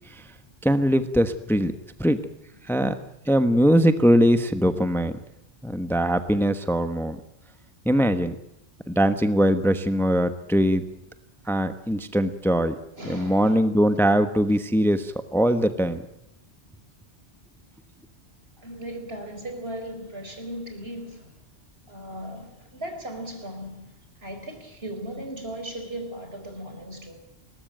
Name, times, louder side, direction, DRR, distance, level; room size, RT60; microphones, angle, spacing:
voice 1, 0.6-1.7 2.0-2.2 2.6-3.0 3.2-5.2 5.6-7.2 7.8-8.3 8.9-10.8 11.4-12.7 13.0-16.0, equal, ahead, 1.1 m, -21 dB
voice 2, 13.0-13.6 18.6-21.3 21.9-23.9 24.2-27.2, right 1 dB, 65° right, 5.0 m, -37 dB
21.0 x 19.0 x 9.0 m
omnidirectional pair, 1.1 m